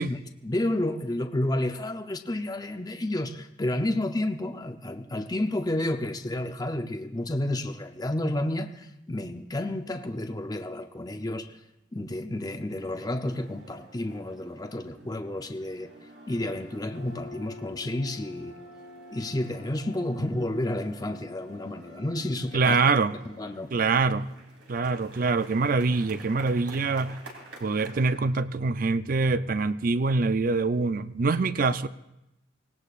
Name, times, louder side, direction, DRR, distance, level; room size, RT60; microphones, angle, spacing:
voice 1, 0.0-11.6 11.9-15.9 16.3-18.6 19.1-22.9 23.4-23.7, left 1 dB, 20° left, 0.6 m, -31 dB
sound 1, 12.8-28.1, left 1 dB, 85° right, 3.4 m, -48 dB
voice 2, 22.5-23.1 23.7-24.3 24.7-27.2 27.6-31.9, right 4 dB, 50° right, 0.5 m, -24 dB
25.0 x 18.5 x 2.5 m
head